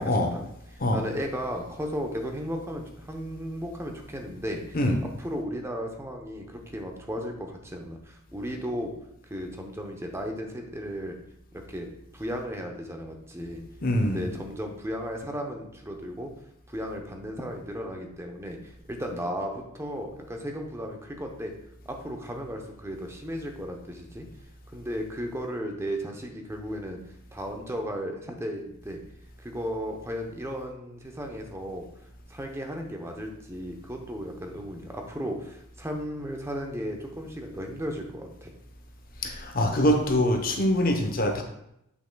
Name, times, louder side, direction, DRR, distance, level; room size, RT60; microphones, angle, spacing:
voice 1, 0.0-4.8 5.2-8.9 9.3-11.2 11.5-11.9 12.1-13.6 14.0-16.3 16.7-21.5 21.9-24.3 24.7-27.0 27.3-29.0 29.4-31.9 32.3-38.5, equal, 10° right, 2 dB, 0.8 m, -35 dB
voice 2, 13.8-14.2 39.2-41.4, left 1 dB, 40° left, 4 dB, 0.8 m, -24 dB
8.0 x 5.8 x 2.3 m, 0.78 s
head